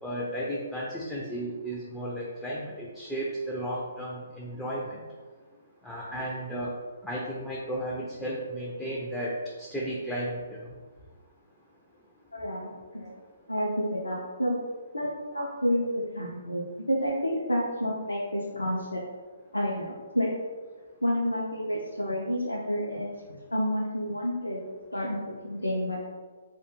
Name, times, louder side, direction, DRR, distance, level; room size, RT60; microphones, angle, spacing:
voice 1, 0.0-5.0 5.8-6.8 7.0-9.3 9.6-10.7, right 1 dB, 5° left, -5 dB, 0.3 m, -34 dB
voice 2, 12.3-13.2 13.5-14.6 14.9-19.0 19.5-20.3 21.0-26.1, equal, 90° left, -4 dB, 0.4 m, -30 dB
2.2 x 2.1 x 3.0 m, 1.4 s
figure-of-eight pair, 130°, 0 cm